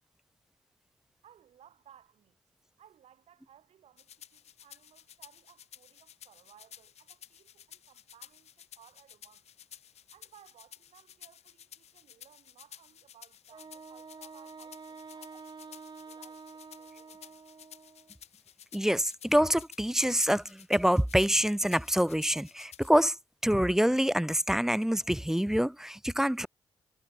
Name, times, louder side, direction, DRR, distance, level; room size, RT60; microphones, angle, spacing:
voice 1, 1.2-2.4 2.8-9.5 10.1-16.4 16.8-17.7, right 10 dB, 80° right, 7.0 m, -60 dB
sound 1, 4.0-22.9, left 10 dB, 80° left, 4.8 m, -53 dB
Wind instrument woodwind instrument, 13.5-18.1, right 4 dB, 45° right, 1.4 m, -48 dB
voice 2, 18.7-23.2 23.4-26.5, equal, 5° right, 0.4 m, -26 dB
supercardioid pair, 40°, 11 cm